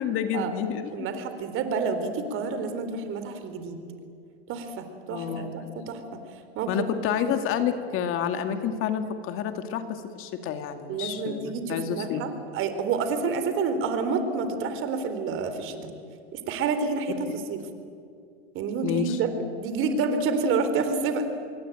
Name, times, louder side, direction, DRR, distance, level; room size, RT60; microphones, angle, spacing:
voice 1, 0.0-1.1 5.1-5.5 6.7-12.3 18.8-19.2, left 8 dB, 40° left, 7 dB, 2.3 m, -29 dB
voice 2, 0.9-3.8 4.5-6.0 6.6-6.7 10.9-15.9 16.3-17.6 18.5-19.3 19.6-21.2, right 4 dB, 40° right, 9 dB, 3.8 m, -28 dB
26.5 x 23.0 x 9.1 m, 2.4 s
supercardioid pair, 130°, 33 cm